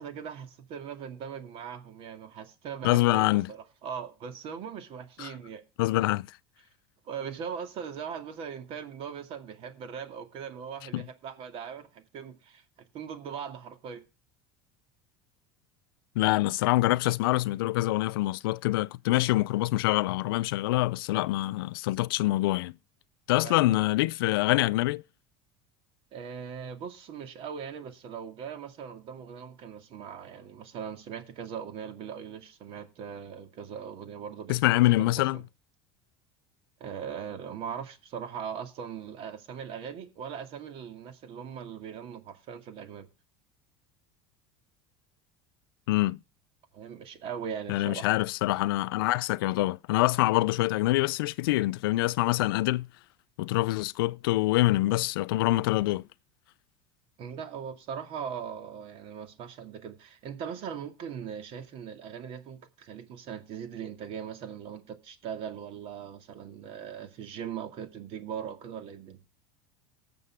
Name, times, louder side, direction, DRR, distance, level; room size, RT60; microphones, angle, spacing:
voice 1, 0.0-5.6 7.1-12.6 12.9-14.0 23.4-23.8 26.1-35.4 36.8-43.1 46.7-48.1 57.2-69.2, right 7 dB, 55° right, 2.2 m, -40 dB
voice 2, 2.8-3.5 5.2-5.3 5.8-6.3 10.9-11.0 16.2-22.7 23.3-25.0 34.5-35.4 45.9-46.2 47.7-52.9 53.4-56.0, left 18 dB, 90° left, 0.4 m, -25 dB
19.5 x 6.9 x 3.6 m
supercardioid pair, 115°, 12 cm